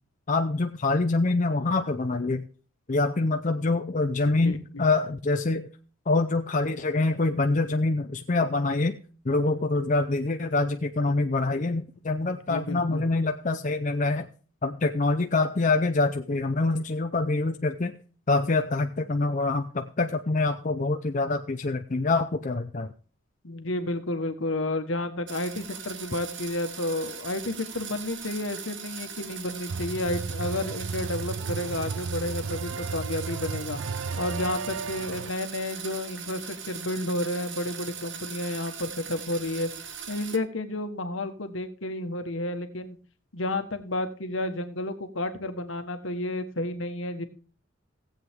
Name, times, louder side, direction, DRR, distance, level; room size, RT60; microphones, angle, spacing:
voice 1, 0.3-2.5 2.9-5.7 6.1-9.0 9.2-14.3 14.6-17.9 18.3-22.9, left 3 dB, 40° left, 5 dB, 0.6 m, -25 dB
voice 2, 4.2-4.8 12.3-13.0 23.4-33.8 34.2-39.7 40.1-43.0 43.3-47.3, left 1 dB, 70° left, 8 dB, 1.4 m, -31 dB
sound 1, 25.3-40.4, right 7 dB, 60° right, 1.2 m, -40 dB
sound 2, 29.7-35.3, right 5 dB, 90° right, 0.5 m, -34 dB
17.5 x 7.9 x 3.6 m, 0.40 s
head